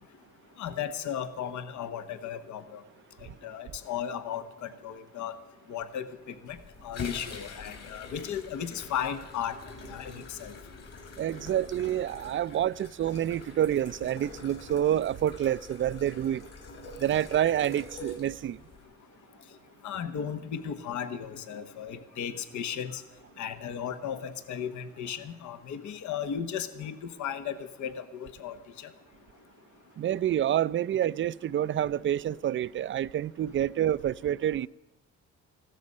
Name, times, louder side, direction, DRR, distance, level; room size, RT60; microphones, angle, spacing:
voice 1, 0.6-2.8 3.2-5.4 5.7-9.6 9.9-10.5 19.8-23.0 23.4-28.9, left 8 dB, 75° left, 1.1 m, -36 dB
sound 1, 6.5-18.8, left 3 dB, 55° left, 3.9 m, -44 dB
voice 2, 11.2-16.4 17.0-18.6 30.0-34.7, right 11 dB, 40° right, 0.4 m, -28 dB
16.0 x 13.0 x 5.4 m
cardioid pair, 90°, 30 cm